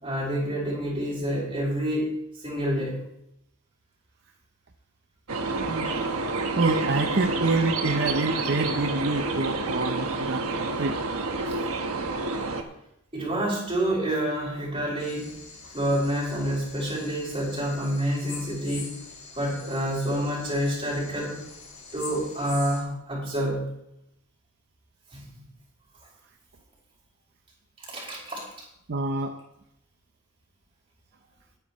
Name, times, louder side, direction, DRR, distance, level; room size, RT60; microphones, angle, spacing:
voice 1, 0.0-3.0 13.1-15.3 15.7-18.9 19.3-21.4 21.9-23.6 25.1-25.4 27.8-28.4, equal, 25° right, -3 dB, 4.9 m, -28 dB
sound 1, 5.3-12.6, right 3 dB, 80° right, 1.3 m, -29 dB
voice 2, 5.6-5.9 6.6-10.5 10.8-11.0 11.5-11.6 28.9-29.4, right 3 dB, 50° right, 5 dB, 0.7 m, -27 dB
sound 2, 15.0-22.8, left 5 dB, 70° left, 4.0 m, -44 dB
20.0 x 9.4 x 3.1 m, 0.81 s
head